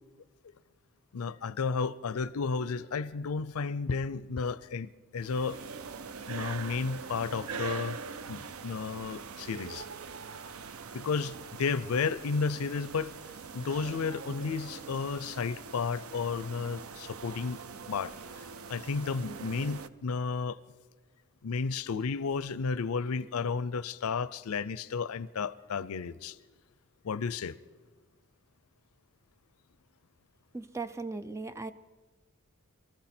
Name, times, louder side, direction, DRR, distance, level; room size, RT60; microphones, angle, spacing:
voice 1, 1.1-5.6 6.3-8.0 8.3-9.9 10.9-13.1 13.5-17.6 17.9-20.6 21.4-26.4 27.0-27.6, left 5 dB, 85° left, 0.5 m, -33 dB
sound 1, 5.2-19.9, right 5 dB, 75° right, 0.6 m, -43 dB
voice 2, 30.5-31.7, right 3 dB, 15° right, 0.4 m, -37 dB
24.0 x 14.0 x 4.4 m
head